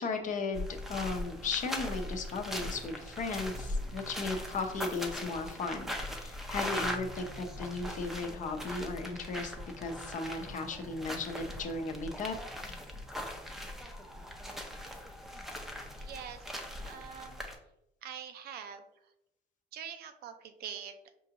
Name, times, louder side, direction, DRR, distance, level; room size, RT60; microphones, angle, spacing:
voice 1, 0.0-12.4, left 3 dB, 50° left, 4 dB, 0.7 m, -36 dB
sound 1, 0.5-17.6, left 1 dB, ahead, 0.5 m, -40 dB
voice 2, 16.0-16.5 16.8-17.4 18.0-18.8 19.7-21.1, right 8 dB, 65° right, 8 dB, 0.5 m, -44 dB
5.4 x 2.5 x 2.8 m, 0.86 s
cardioid pair, 110°, 17 cm